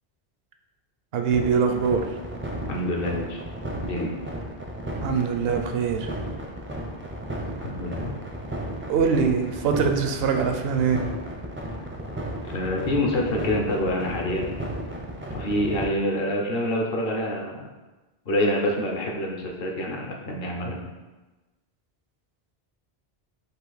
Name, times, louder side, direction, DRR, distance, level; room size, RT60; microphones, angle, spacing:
voice 1, 1.1-2.0 5.0-6.1 8.9-11.0, right 6 dB, 75° right, 5 dB, 0.8 m, -23 dB
sound 1, 1.3-15.8, right 1 dB, 20° right, 0.4 m, -34 dB
voice 2, 2.7-3.4 3.8-4.1 7.6-8.1 12.5-14.5 15.3-17.6 18.3-20.8, left 1 dB, 65° left, 0 dB, 0.9 m, -26 dB
4.9 x 2.5 x 4.0 m, 1.1 s
omnidirectional pair, 1.1 m